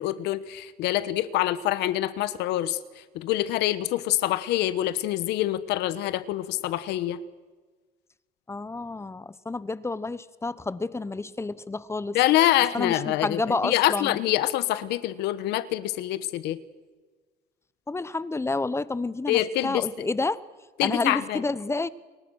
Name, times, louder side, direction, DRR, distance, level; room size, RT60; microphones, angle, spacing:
voice 1, 0.0-2.8 3.1-7.2 12.1-16.6 19.3-19.8 20.8-21.4, left 14 dB, 90° left, 14 dB, 1.2 m, -25 dB
voice 2, 8.5-12.2 12.7-14.2 17.9-20.4 20.8-21.9, left 3 dB, 15° left, 17 dB, 1.0 m, -29 dB
29.5 x 23.0 x 6.4 m, 1.4 s
cardioid pair, 110°, 17 cm